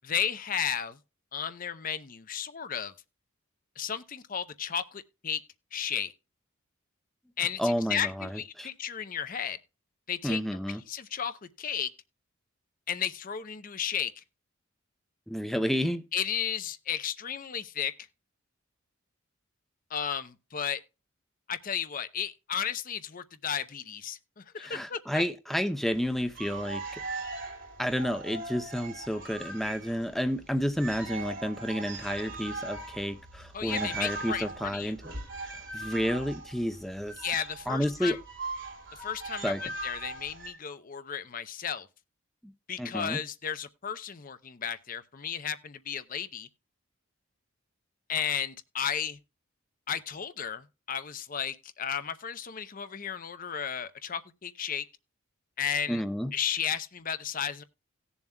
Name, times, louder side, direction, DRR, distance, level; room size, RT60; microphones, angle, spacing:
voice 1, 0.0-1.0 1.3-2.9 3.8-5.4 5.7-6.1 7.4-9.6 10.1-10.4 10.9-11.9 12.9-14.2 16.1-17.9 19.9-20.8 21.5-25.2 33.5-34.9 37.2-38.2 39.0-41.9 42.7-46.5 48.1-49.2 49.9-54.9 55.6-56.0 56.3-57.6, left 8 dB, 40° left, 0.6 m, -33 dB
voice 2, 7.6-8.7 10.2-10.8 15.3-16.0 24.6-27.0 27.8-35.0 35.4-37.2 37.7-38.2 39.4-39.6 42.4-42.5 42.8-43.2 55.9-56.3, equal, ahead, 0.6 m, -31 dB
sound 1, 26.2-30.1 30.4-30.5 30.7-40.5, right 3 dB, 60° right, 3.2 m, -40 dB
18.0 x 7.1 x 2.2 m
head